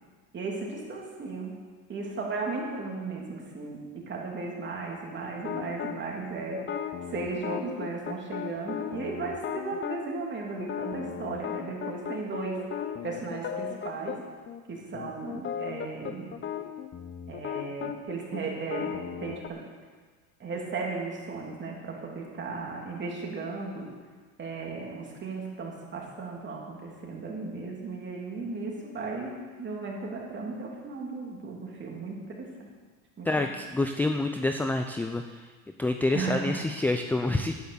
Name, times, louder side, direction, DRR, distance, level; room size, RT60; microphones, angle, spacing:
voice 1, 0.3-1.6 1.9-6.6 7.1-12.7 13.0-14.2 14.7-16.3 17.3-19.6 20.4-23.9 24.4-32.7 33.2-33.5 36.1-36.5, right 3 dB, 30° right, -1 dB, 3.0 m, -35 dB
sound 1, 5.4-6.0 6.6-10.0 10.6-14.2 14.5-14.6 14.9-19.5, left 9 dB, 30° left, 0.9 m, -36 dB
voice 2, 33.3-35.2 35.8-37.5, left 2 dB, 5° left, 5 dB, 0.3 m, -27 dB
10.5 x 9.4 x 7.0 m, 1.5 s
supercardioid pair, 115°, 40 cm